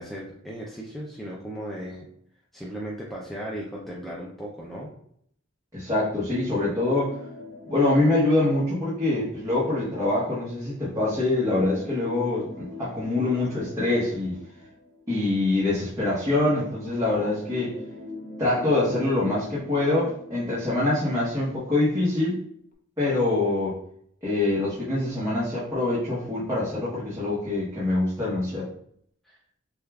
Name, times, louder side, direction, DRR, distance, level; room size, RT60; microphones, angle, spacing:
voice 1, 0.0-2.0 2.5-4.9 29.2-29.4, equal, ahead, -5 dB, 0.5 m, -36 dB
voice 2, 5.7-7.2 7.7-14.4 15.1-17.8 18.4-22.4 23.0-23.8 24.2-28.7, left 2 dB, 15° right, -10 dB, 1.1 m, -24 dB
sound 1, 7.0-9.7 11.2-15.5 16.8-21.7 22.0-22.1 22.7-22.8, left 3 dB, 40° left, 0.8 m, -43 dB
6.3 x 2.4 x 2.3 m, 0.67 s
head